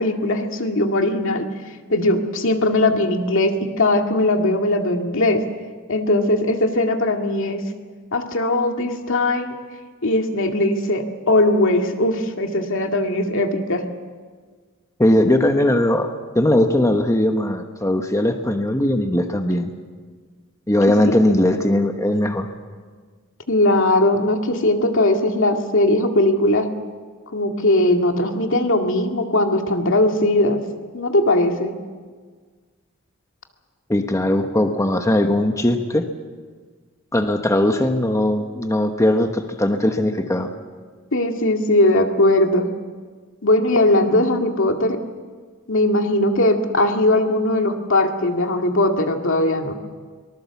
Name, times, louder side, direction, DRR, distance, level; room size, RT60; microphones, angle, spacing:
voice 1, 0.0-1.5 1.9-5.4 5.9-7.6 8.1-9.6 10.0-13.8 21.0-21.2 23.5-26.7 27.3-30.6 30.9-31.7 41.1-42.7 43.4-45.0 45.7-49.7, left 1 dB, 65° left, 4 dB, 2.2 m, -19 dB
voice 2, 15.0-19.7 20.7-22.5 33.9-36.1 37.1-40.5, left 1 dB, 15° left, 5 dB, 1.1 m, -19 dB
24.0 x 19.5 x 7.2 m, 1.5 s
head